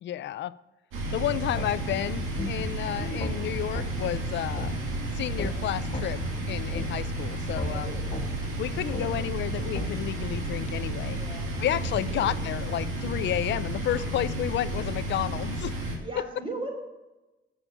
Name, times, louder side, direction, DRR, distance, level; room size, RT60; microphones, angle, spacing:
voice 1, 0.0-0.6 1.1-4.8 5.1-6.2 6.5-8.0 8.6-11.2 11.6-15.8 16.2-16.3, left 12 dB, 65° left, 0.4 m, -31 dB
sound 1, 0.9-16.0, right 1 dB, 90° right, 2.3 m, -32 dB
sound 2, 1.6-1.7 2.4-2.5 3.2-3.3 3.7-3.9 4.6-4.7 5.4-5.5 5.9-6.1 6.7-6.9 7.6-7.7 8.1-8.3 8.9-9.1 9.7-9.9, left 3 dB, 35° left, 1.4 m, -32 dB
voice 2, 3.0-3.3 7.7-8.1 8.8-9.1 10.9-11.5 12.2-12.3 13.9-14.0 16.0-16.7, right 2 dB, 25° right, 3.4 m, -38 dB
8.3 x 7.1 x 7.1 m
cardioid pair, 90°, 20 cm